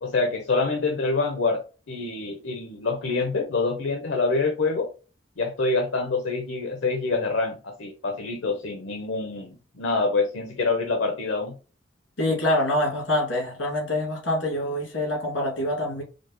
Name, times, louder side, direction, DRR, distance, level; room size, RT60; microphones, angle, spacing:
voice 1, 0.0-4.9 5.4-11.5, left 3 dB, 70° left, 3 dB, 0.6 m, -26 dB
voice 2, 12.2-16.0, left 1 dB, 90° left, -1 dB, 2.1 m, -25 dB
5.1 x 2.1 x 2.8 m, 0.35 s
head